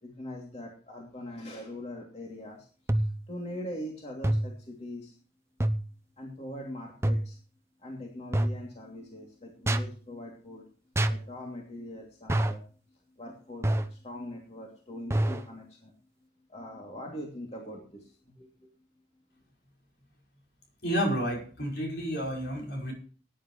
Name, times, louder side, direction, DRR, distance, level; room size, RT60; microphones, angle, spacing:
voice 1, 0.0-2.7 3.0-5.1 6.2-7.4 7.8-10.6 11.1-12.6 13.2-15.9 16.5-18.7, left 1 dB, 35° left, -1 dB, 2.8 m, -42 dB
sound 1, 2.9-3.3 4.2-4.6 5.6-5.9 7.0-7.3 8.3-8.6 9.7-9.9 11.0-11.3 12.3-12.6 13.6-13.9 15.1-15.5, right 1 dB, 15° right, 0.8 m, -27 dB
voice 2, 20.8-22.9, equal, 65° left, -1 dB, 5.3 m, -30 dB
19.0 x 10.0 x 3.2 m, 0.41 s
head